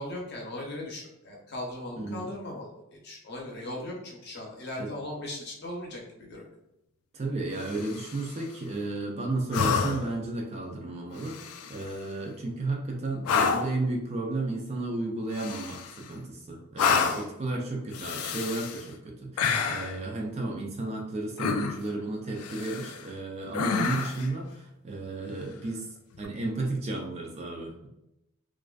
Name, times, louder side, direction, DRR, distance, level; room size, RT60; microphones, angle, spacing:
voice 1, 0.0-6.4, left 1 dB, 50° left, -2 dB, 0.6 m, -38 dB
voice 2, 2.0-2.3 4.8-4.9 7.1-25.9 26.2-27.9, right 2 dB, 30° right, 0 dB, 0.3 m, -33 dB
sound 1, 7.6-8.3 9.5-10.2 11.2-11.9 13.2-13.8 15.3-16.1 16.8-17.3 17.9-18.8 19.4-20.0 21.4-21.9 22.4-23.1 23.5-24.3 26.1-26.3, left 5 dB, 80° left, 0.3 m, -29 dB
2.4 x 2.3 x 2.2 m, 0.88 s
head